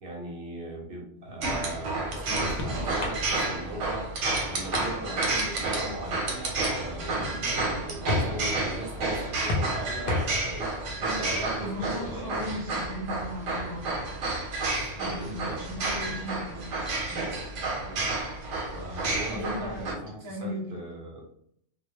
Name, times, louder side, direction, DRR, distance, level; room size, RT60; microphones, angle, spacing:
voice 1, 0.0-4.1 4.5-10.7 11.0-12.5 14.9-15.7 17.8-18.1 18.7-21.3, right 1 dB, 55° right, -1 dB, 0.8 m, -39 dB
sound 1, 1.4-19.9, right 2 dB, 85° right, 0.9 m, -30 dB
sound 2, 1.8-12.6, left 2 dB, 55° left, 0.5 m, -37 dB
voice 2, 11.6-14.0 15.0-16.6 17.1-17.3 19.3-20.8, left 1 dB, 40° right, -3 dB, 0.3 m, -37 dB
2.1 x 2.0 x 2.8 m, 0.68 s
omnidirectional pair, 1.2 m